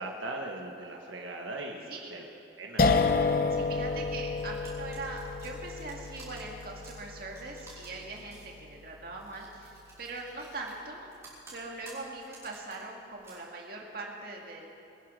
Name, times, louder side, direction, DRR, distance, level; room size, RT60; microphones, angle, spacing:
voice 1, 0.0-2.2 2.6-3.0, right 2 dB, 85° right, 1 dB, 1.3 m, -39 dB
sound 1, 2.8-9.7, left 4 dB, 50° left, 0.7 m, -31 dB
voice 2, 3.5-11.1 11.5-14.7, right 3 dB, 50° right, -1 dB, 2.2 m, -41 dB
sound 2, 4.4-8.6 9.2-10.8 11.1-12.7 13.1-13.3, right 3 dB, 15° right, 4.7 m, -53 dB
22.5 x 10.0 x 6.3 m, 2.7 s
head